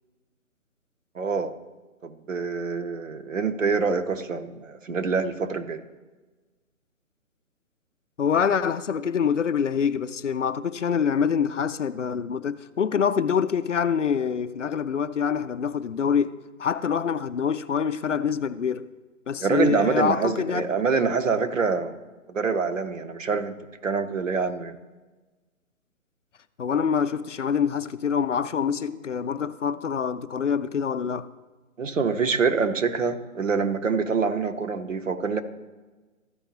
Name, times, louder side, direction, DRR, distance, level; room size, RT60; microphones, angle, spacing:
voice 1, 1.1-1.5 2.0-5.8 19.4-22.0 22.3-23.6 23.8-24.8 31.8-35.4, right 5 dB, 65° right, 0.9 m, -25 dB
voice 2, 8.2-18.9 19.3-20.7 26.6-31.3, left 7 dB, 60° left, 0.5 m, -25 dB
14.0 x 5.1 x 2.9 m
figure-of-eight pair, 140°, 42 cm